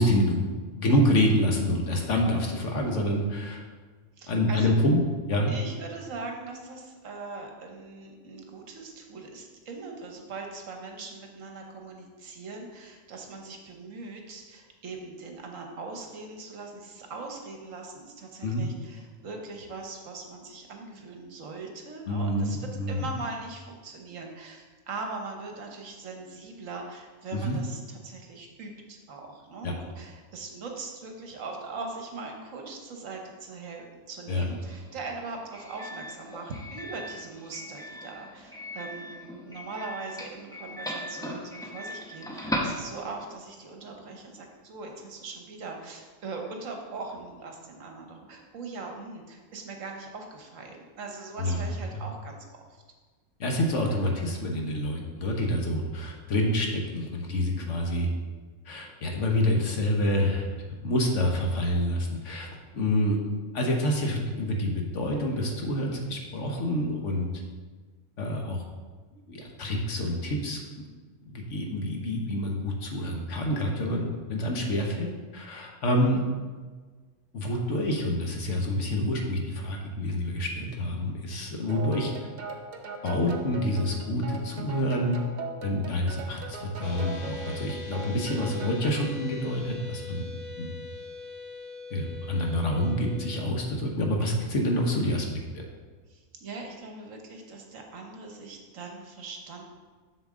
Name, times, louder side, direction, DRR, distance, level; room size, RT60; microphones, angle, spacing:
voice 1, 0.0-3.6 4.3-5.0 5.3-5.5 18.4-18.6 22.1-23.0 27.3-27.6 29.6-29.7 34.3-34.4 51.4-51.6 51.9-52.0 53.4-58.1 58.7-60.5 60.8-62.5 62.7-63.2 63.5-67.3 68.2-68.6 69.3-70.6 71.2-76.2 77.3-82.1 83.0-85.2 85.6-90.7 91.9-95.3 95.5-95.6, left 1 dB, 60° left, 1 dB, 1.3 m, -27 dB
voice 2, 4.2-4.7 5.5-52.8 96.1-99.6, right 3 dB, 65° right, 2 dB, 1.3 m, -41 dB
Doorbell, 34.3-43.4, equal, 5° left, 0.5 m, -38 dB
sound 1, 81.7-89.1, right 3 dB, 45° right, 0.6 m, -40 dB
sound 2, 86.8-93.5, left 4 dB, 45° left, 0.9 m, -42 dB
7.0 x 6.6 x 3.6 m, 1.4 s
omnidirectional pair, 1.5 m